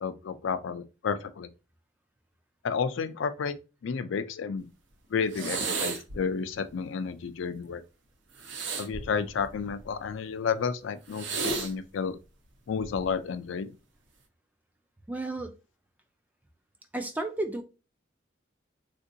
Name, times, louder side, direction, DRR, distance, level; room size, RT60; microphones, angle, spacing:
voice 1, 0.0-1.5 2.6-3.6 3.8-4.7 5.1-7.8 8.8-12.2 12.7-13.7, left 6 dB, 85° left, 0.4 m, -31 dB
sound 1, 5.3-6.2 8.4-9.9 11.1-11.7 12.8-13.1, right 4 dB, 80° right, 0.7 m, -33 dB
voice 2, 15.1-15.5 16.9-17.6, right 2 dB, 10° right, 0.3 m, -32 dB
3.6 x 2.5 x 2.6 m
head